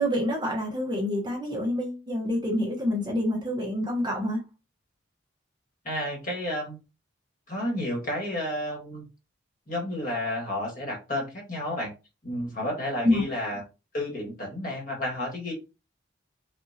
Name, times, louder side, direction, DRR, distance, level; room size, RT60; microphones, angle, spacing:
voice 1, 0.0-4.4 13.0-13.2, left 1 dB, 20° right, 1.1 m, -27 dB
voice 2, 5.8-6.8 7.5-9.1 9.7-11.9 12.2-13.6 13.9-15.5, left 1 dB, 40° left, 1.8 m, -31 dB
5.4 x 2.7 x 2.8 m
head